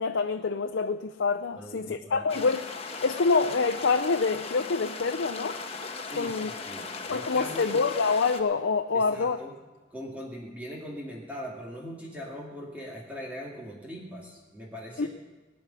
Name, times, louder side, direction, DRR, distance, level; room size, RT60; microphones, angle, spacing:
voice 1, 0.0-2.6 3.0-5.6 6.2-6.5 7.1-9.4 15.0-15.1, left 4 dB, 80° left, 8 dB, 0.5 m, -26 dB
voice 2, 1.6-2.3 6.0-7.7 8.9-9.5 9.9-15.1, equal, 10° right, -3 dB, 2.2 m, -41 dB
sound 1, 2.3-8.4, left 4 dB, 30° left, 1.2 m, -38 dB
18.5 x 6.2 x 9.8 m, 1.2 s
head